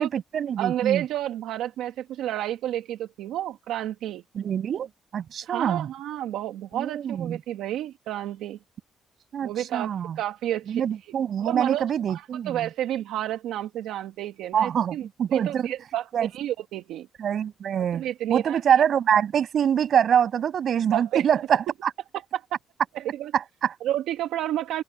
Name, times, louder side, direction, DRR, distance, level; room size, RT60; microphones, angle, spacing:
voice 1, 0.0-1.0 4.3-5.9 6.7-7.4 9.3-10.2 10.7-12.7 14.5-15.7 16.1-16.3 17.2-18.0 18.3-21.9 23.3-23.7, right 8 dB, 60° right, 6.8 m, -25 dB
voice 2, 0.6-4.2 5.4-8.6 9.4-10.8 11.4-15.0 15.3-16.0 16.3-17.1 17.9-18.6 20.9-21.2 22.3-22.4 22.9-23.3 23.8-24.8, right 12 dB, 85° right, 1.5 m, -30 dB
open air
cardioid pair, 90°, 0 cm